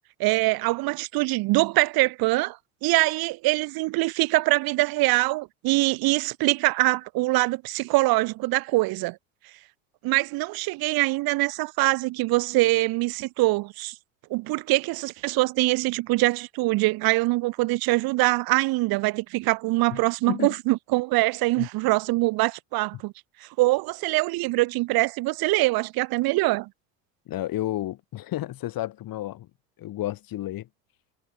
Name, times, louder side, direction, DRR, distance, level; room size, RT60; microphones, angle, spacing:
voice 1, 0.2-2.6 2.8-9.2 10.0-13.9 14.3-23.1 23.6-26.7, right 21 dB, 60° right, 1.1 m, -23 dB
voice 2, 19.9-20.6 21.6-21.7 27.3-29.5 29.8-30.7, left 14 dB, 55° left, 5.7 m, -31 dB
hypercardioid pair, 80°, 42 cm